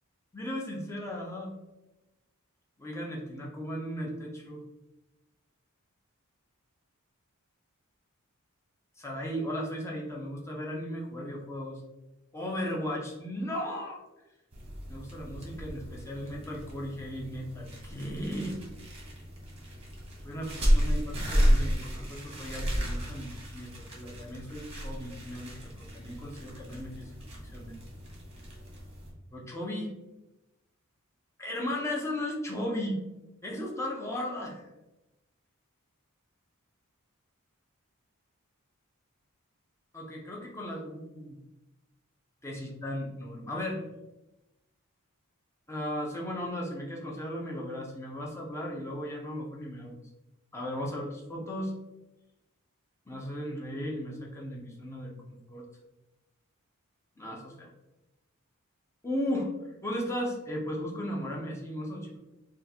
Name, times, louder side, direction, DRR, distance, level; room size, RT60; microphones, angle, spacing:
voice 1, 0.3-1.5 2.8-4.6 9.0-11.8 12.3-14.0 14.9-18.6 20.2-27.1 27.4-27.8 29.3-29.9 31.4-33.0 33.4-34.7 39.9-41.4 42.4-43.8 45.7-50.0 50.5-51.7 53.1-55.6 57.2-57.7 59.0-59.5 59.8-62.2, equal, 10° left, -2 dB, 0.6 m, -36 dB
sound 1, 14.5-29.1, equal, 25° right, 0.9 m, -32 dB
3.7 x 2.4 x 2.8 m, 1.0 s
head